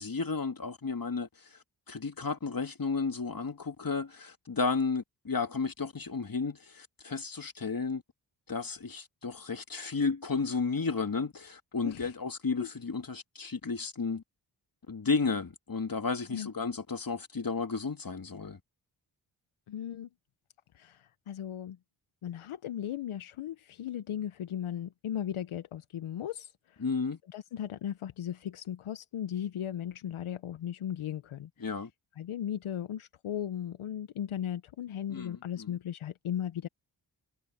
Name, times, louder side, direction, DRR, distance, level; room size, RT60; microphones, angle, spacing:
voice 1, 0.0-1.5 1.9-8.0 8.5-14.2 14.9-18.6 26.8-27.2 31.6-31.9 35.1-35.7, left 4 dB, 45° left, 3.1 m, -33 dB
voice 2, 19.7-20.1 20.7-21.8 22.2-26.8 27.3-31.5 32.2-36.7, left 10 dB, 75° left, 1.1 m, -37 dB
supercardioid pair, 40°, 49 cm